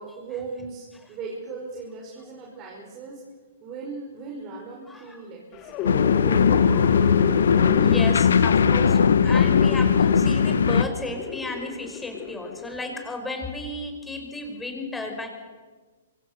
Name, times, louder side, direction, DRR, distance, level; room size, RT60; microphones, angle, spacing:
voice 1, 0.0-3.2 3.6-5.9 6.2-6.9, right 4 dB, 30° right, -1 dB, 5.3 m, -38 dB
voice 2, 4.9-5.2 7.4-15.3, left 2 dB, 10° left, 3 dB, 5.4 m, -34 dB
sound 1, 5.5-12.8, left 8 dB, 30° left, 2.3 m, -31 dB
sound 2, 5.9-10.8, left 6 dB, 70° left, 1.3 m, -19 dB
27.5 x 24.5 x 6.8 m, 1.4 s
figure-of-eight pair, 120°, 0 cm